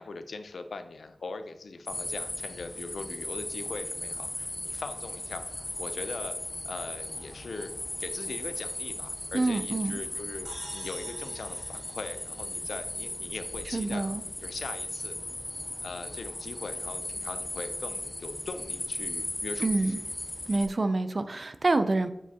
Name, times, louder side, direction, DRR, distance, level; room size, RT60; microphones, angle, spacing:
voice 1, 0.0-6.4 6.6-7.7 8.0-14.0 14.4-15.2 15.8-19.8, left 3 dB, 90° left, 9 dB, 0.5 m, -40 dB
sound 1, 1.9-20.7, left 1 dB, 25° left, 0.5 m, -37 dB
voice 2, 9.3-10.0 13.7-14.2 19.6-20.0 20.5-22.1, right 2 dB, 45° right, 11 dB, 0.4 m, -27 dB
sound 2, 10.5-13.0, equal, 10° right, 1.4 m, -48 dB
7.9 x 4.7 x 2.8 m, 0.87 s
wide cardioid pair, 90°, 0 cm